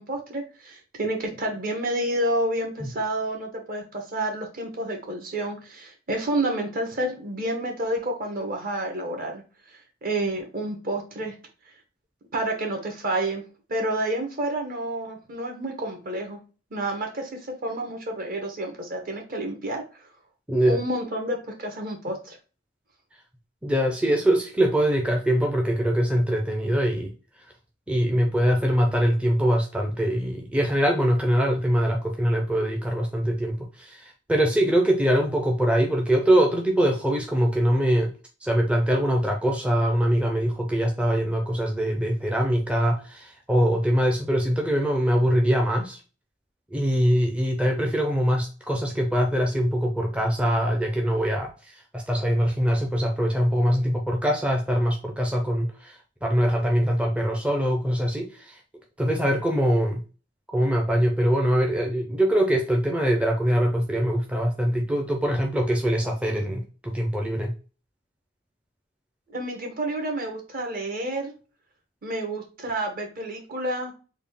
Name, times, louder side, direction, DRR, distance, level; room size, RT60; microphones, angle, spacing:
voice 1, 0.0-9.4 9.7-11.4 12.3-13.4 13.7-16.4 16.7-19.8 20.6-22.4 69.3-71.3 72.0-73.9, right 1 dB, 50° right, 3 dB, 1.0 m, -29 dB
voice 2, 23.6-27.1 27.9-38.1 38.4-46.0 46.7-58.6 59.0-60.0 60.5-67.5, equal, 5° right, 1 dB, 0.5 m, -23 dB
3.7 x 2.3 x 3.4 m, 0.34 s
head